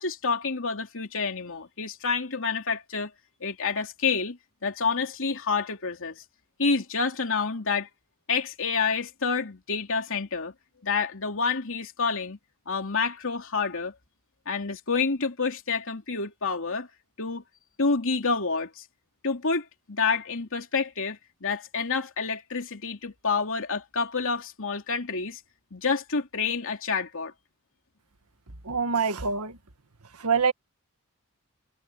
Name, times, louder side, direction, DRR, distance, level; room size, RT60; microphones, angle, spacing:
voice 1, 0.0-3.1 3.4-6.2 6.6-7.9 8.3-10.5 10.8-12.4 12.7-13.9 14.5-16.9 17.2-17.4 17.8-18.8 19.2-25.4 25.7-27.3, left 4 dB, 65° left, 2.9 m, -28 dB
voice 2, 28.6-29.5 30.2-30.5, right 5 dB, 80° right, 1.7 m, -25 dB
head